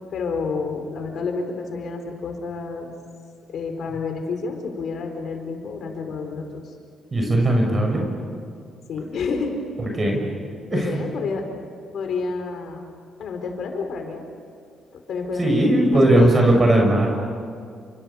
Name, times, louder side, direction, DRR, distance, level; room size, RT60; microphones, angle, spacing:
voice 1, 0.1-2.9 3.5-6.7 8.9-9.6 10.7-11.5 11.9-12.8 13.2-14.3 15.1-16.4, left 4 dB, 65° left, 4 dB, 4.7 m, -29 dB
voice 2, 7.1-8.0 10.0-10.2 10.7-10.9 15.4-17.1, right 1 dB, 30° right, 1 dB, 6.4 m, -18 dB
29.0 x 25.5 x 7.2 m, 2.2 s
cardioid pair, 90°, 0 cm